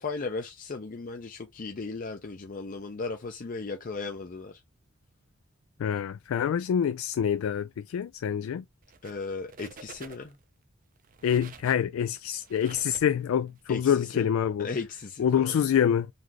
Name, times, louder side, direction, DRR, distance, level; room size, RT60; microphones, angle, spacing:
voice 1, 0.0-4.6 9.0-10.4 13.7-14.2 14.6-15.5, left 4 dB, 40° left, 0.5 m, -36 dB
voice 2, 5.8-8.6 11.2-14.7 15.2-16.1, left 8 dB, 90° left, 0.3 m, -26 dB
sound 1, 8.8-9.2 9.5-10.4 11.0-13.6, right 5 dB, 40° right, 0.5 m, -49 dB
4.0 x 3.2 x 2.9 m
head